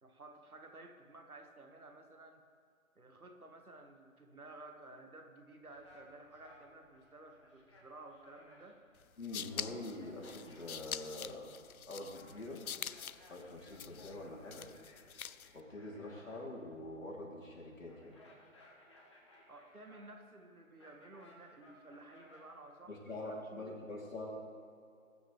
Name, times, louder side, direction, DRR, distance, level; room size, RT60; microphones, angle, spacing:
voice 1, 0.0-2.4 3.0-8.8 19.5-24.1, right 2 dB, 85° right, 4 dB, 1.8 m, -54 dB
sound 1, 5.6-22.9, left 1 dB, 20° left, 1.2 m, -62 dB
sound 2, 9.0-15.6, left 8 dB, 85° left, 0.6 m, -45 dB
voice 2, 9.2-11.5 11.9-12.6 13.3-14.7 15.5-18.2 22.9-24.3, left 2 dB, 65° left, -3 dB, 3.4 m, -45 dB
20.0 x 9.2 x 3.3 m, 2.5 s
figure-of-eight pair, 160°, 42 cm